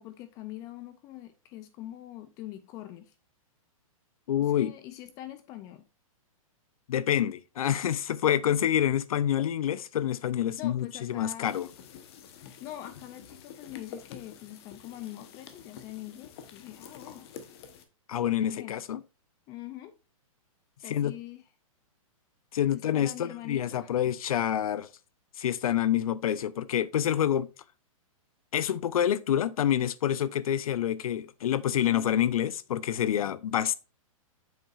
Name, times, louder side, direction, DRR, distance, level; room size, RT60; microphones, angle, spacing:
voice 1, 0.0-3.1 4.4-5.9 10.6-11.6 12.6-17.3 18.3-18.8 19.5-19.9 20.8-21.4 22.7-24.1 31.9-32.1, left 13 dB, 20° left, 0.3 m, -43 dB
voice 2, 4.3-4.7 6.9-11.7 18.1-19.0 20.8-21.1 22.5-24.9 25.4-27.5 28.5-33.7, left 10 dB, 80° left, 0.5 m, -27 dB
sound 1, 11.5-17.9, left 8 dB, 45° left, 1.0 m, -48 dB
7.3 x 5.7 x 2.4 m
hypercardioid pair, 155°, 18 cm